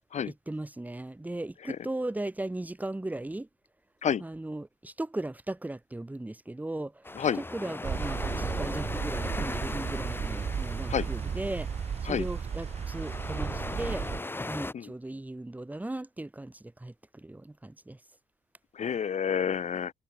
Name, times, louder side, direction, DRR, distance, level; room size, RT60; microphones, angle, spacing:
voice 1, 0.3-3.5 4.2-7.0 7.3-11.7 12.0-14.0 14.5-18.0, right 2 dB, 10° right, 6.7 m, -37 dB
sound 1, 7.0-14.7, left 2 dB, 15° left, 7.8 m, -38 dB
sound 2, 7.8-14.2, right 7 dB, 40° right, 6.3 m, -34 dB
voice 2, 18.8-19.9, left 8 dB, 45° left, 4.9 m, -29 dB
cardioid pair, 110°, 17 cm